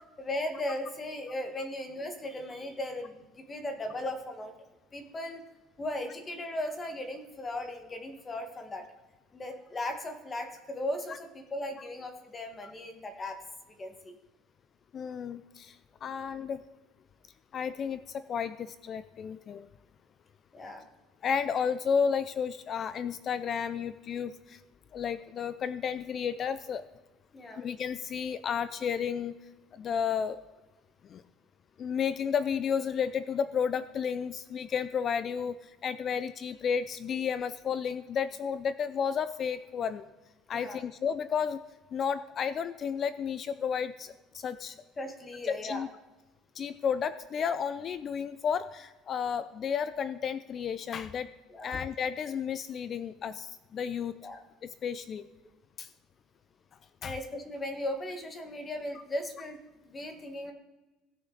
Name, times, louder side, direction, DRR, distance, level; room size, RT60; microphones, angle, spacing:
voice 1, 0.2-4.5 4.9-5.4 5.8-8.9 9.3-13.4 13.8-14.1 20.5-20.9 27.3-27.6 40.5-40.8 45.0-45.9 51.5-51.7 54.2-54.4 57.0-60.5, left 1 dB, 20° left, 5 dB, 1.5 m, -37 dB
voice 2, 14.9-16.6 17.5-19.7 21.2-24.6 24.9-26.8 27.6-29.4 29.7-30.4 31.0-31.2 31.8-40.0 40.5-41.6 41.9-44.7 45.5-45.9 46.6-51.3 51.6-54.2 54.6-55.2 55.8-55.9 57.0-57.1, left 7 dB, 35° left, 14 dB, 0.4 m, -32 dB
16.5 x 6.6 x 3.9 m, 1.1 s
cardioid pair, 140°, 0 cm